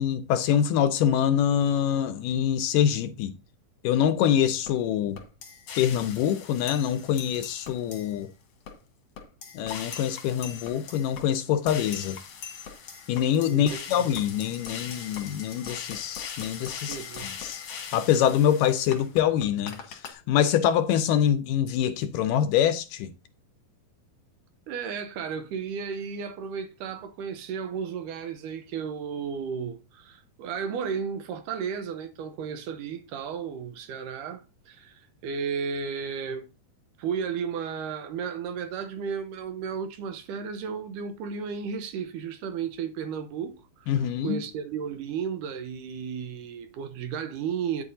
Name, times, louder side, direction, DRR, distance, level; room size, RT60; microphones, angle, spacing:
voice 1, 0.0-3.3 3.8-5.2 5.8-8.3 9.6-12.2 13.1-17.0 17.2-17.6 17.9-23.1 43.9-44.4, left 9 dB, 80° left, 2.0 m, -25 dB
sound 1, 4.7-4.8 5.2-8.2 8.7-8.8 9.2-20.1, left 7 dB, 55° left, 1.8 m, -40 dB
voice 2, 13.5-14.0 16.9-17.3 24.7-36.5 37.0-47.8, right 6 dB, 75° right, 2.1 m, -34 dB
9.3 x 8.4 x 2.6 m
omnidirectional pair, 4.1 m